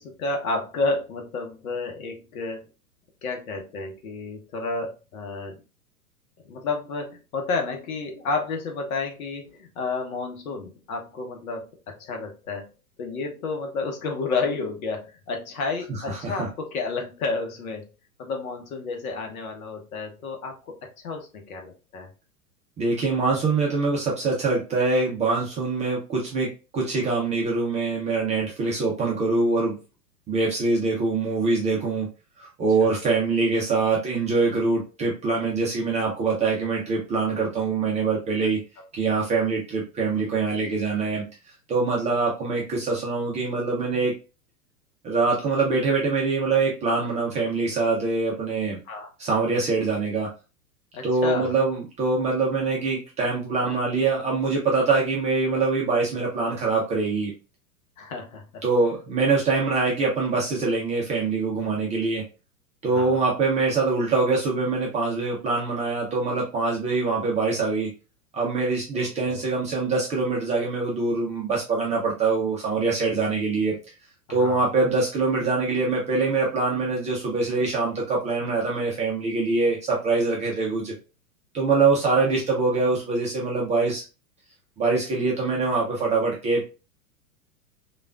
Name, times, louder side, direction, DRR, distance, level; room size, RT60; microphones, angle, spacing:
voice 1, 0.0-2.6 3.2-5.6 6.5-12.7 13.0-17.9 18.2-22.1 32.8-32.9 48.9-49.1 50.9-51.5 58.0-58.6 62.9-63.2 68.9-69.4 74.3-74.6, left 3 dB, 65° left, 3 dB, 0.9 m, -31 dB
voice 2, 15.9-16.5 22.8-29.8 30.3-32.1 32.4-38.6 38.9-41.2 41.7-44.1 45.0-48.8 49.2-50.3 51.0-57.3 58.6-62.2 62.8-67.9 68.3-73.7 74.3-80.9 81.5-84.0 84.8-86.7, right 3 dB, 15° right, -3 dB, 0.4 m, -24 dB
3.3 x 2.4 x 2.3 m, 0.32 s
hypercardioid pair, 105°, 46 cm